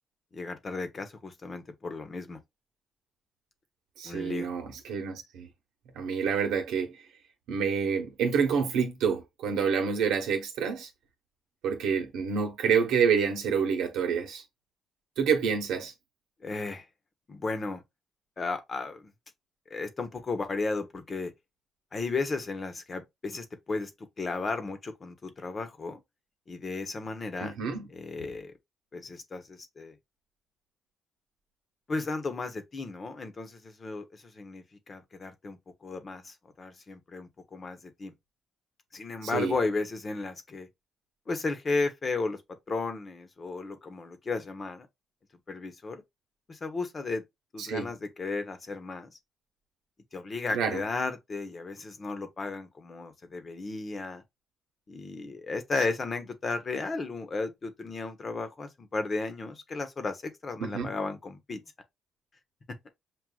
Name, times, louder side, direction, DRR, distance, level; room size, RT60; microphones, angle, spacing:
voice 1, 0.3-2.4 4.0-4.5 16.4-16.8 17.3-17.8 18.4-19.1 19.7-21.3 21.9-23.9 24.2-26.0 26.5-27.5 27.9-28.5 28.9-30.0 31.9-38.1 38.9-40.7 41.3-44.9 45.5-46.0 46.5-47.2 47.5-49.2 50.1-54.2 54.9-61.6 62.7-62.9, left 3 dB, 35° left, 1.0 m, -34 dB
voice 2, 4.0-5.5 6.0-6.9 7.5-10.9 11.6-14.4 15.2-15.9 27.4-27.9 39.2-39.5 47.6-47.9 50.5-50.8 60.6-60.9, right 6 dB, 90° right, 1.0 m, -28 dB
6.2 x 2.5 x 2.3 m
cardioid pair, 90°, 0 cm